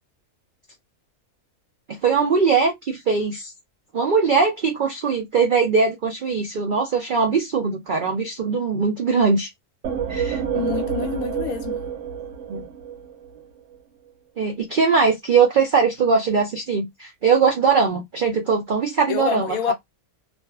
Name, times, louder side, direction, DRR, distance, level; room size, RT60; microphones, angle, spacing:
voice 1, 1.9-3.5 3.9-9.5 10.1-10.4 12.5-12.6 14.4-19.7, right 5 dB, 85° right, 0.4 m, -21 dB
sound 1, 9.8-13.4, right 8 dB, 65° right, 0.9 m, -28 dB
voice 2, 10.5-11.8 19.1-19.7, left 9 dB, 80° left, 1.1 m, -27 dB
2.6 x 2.4 x 2.3 m
omnidirectional pair, 1.5 m